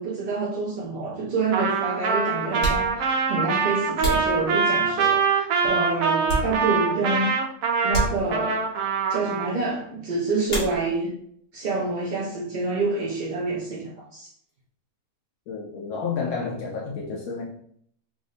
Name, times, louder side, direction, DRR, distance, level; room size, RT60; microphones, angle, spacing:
voice 1, 0.0-7.3 7.8-8.7 9.1-11.1 11.5-14.3, right 3 dB, 55° right, -4 dB, 0.5 m, -27 dB
Trumpet, 1.5-9.5, right 5 dB, 75° right, 1.0 m, -24 dB
sound 1, 2.5-5.1 5.6-7.0 7.3-7.4 7.9-8.7 10.4-11.2 11.5-12.2 12.5-14.6, right 2 dB, 60° left, 1.8 m, -32 dB
voice 2, 15.5-17.4, left 5 dB, 85° left, -3 dB, 1.1 m, -30 dB
3.6 x 2.1 x 3.7 m, 0.64 s
omnidirectional pair, 1.5 m